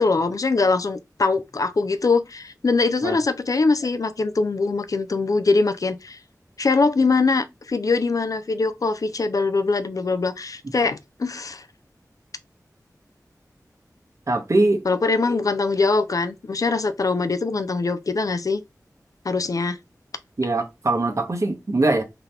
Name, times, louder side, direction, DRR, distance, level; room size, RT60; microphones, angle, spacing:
voice 1, 0.0-6.2 6.6-11.6 14.9-18.6 19.2-19.8, left 3 dB, 60° left, 0.4 m, -22 dB
voice 2, 14.3-14.8 20.4-22.0, right 2 dB, 50° right, 1.0 m, -21 dB
3.9 x 2.9 x 3.4 m
wide cardioid pair, 65°, 7 cm